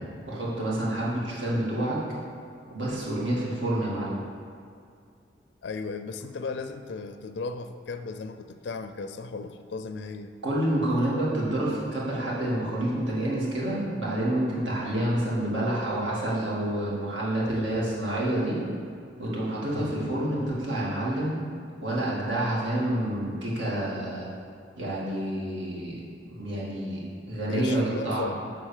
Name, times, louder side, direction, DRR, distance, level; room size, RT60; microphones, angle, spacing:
voice 1, 0.2-2.0 2.7-4.2 10.4-18.6 19.2-21.4 21.8-24.3 24.8-26.0 26.3-28.3, right 1 dB, 80° right, -6 dB, 2.2 m, -28 dB
voice 2, 5.6-10.3 27.5-28.5, left 4 dB, 70° left, 9 dB, 0.4 m, -36 dB
11.0 x 3.9 x 6.6 m, 2.3 s
head